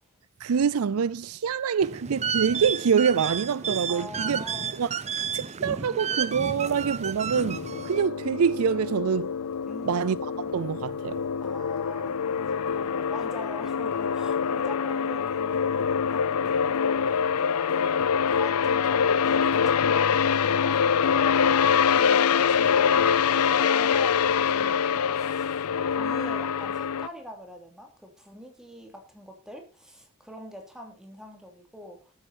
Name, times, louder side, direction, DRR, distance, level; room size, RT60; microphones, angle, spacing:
voice 1, 0.4-4.4 4.7-4.9 5.3-9.3 9.8-10.2 10.5-11.2, right 6 dB, 75° right, 0.4 m, -25 dB
sound 1, 1.8-8.1, right 7 dB, 30° right, 0.6 m, -32 dB
voice 2, 3.9-4.8 9.7-10.5 11.4-17.0 17.7-20.8 21.1-25.6 25.9-32.1, equal, 5° right, 2.9 m, -44 dB
sound 2, 7.4-27.1, left 7 dB, 90° left, 0.5 m, -25 dB
12.5 x 8.8 x 4.3 m
head